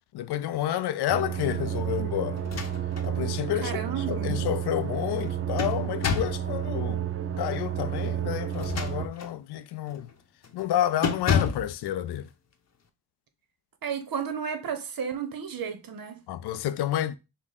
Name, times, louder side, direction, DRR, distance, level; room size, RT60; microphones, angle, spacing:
voice 1, 0.1-2.4 3.0-7.0 7.4-10.1 10.5-12.3 16.3-17.1, left 12 dB, 85° left, 0.5 m, -30 dB
sound 1, 1.1-9.1, right 9 dB, 35° right, 0.6 m, -31 dB
sound 2, 2.4-3.1 3.6-3.7 5.1-6.5 8.5-9.4 9.9-10.1 10.4-10.7 11.0-11.7, left 6 dB, 45° left, 0.8 m, -29 dB
voice 2, 3.6-4.4 13.8-16.2, right 7 dB, 65° right, 1.0 m, -33 dB
6.0 x 2.1 x 4.0 m
cardioid pair, 65°, 38 cm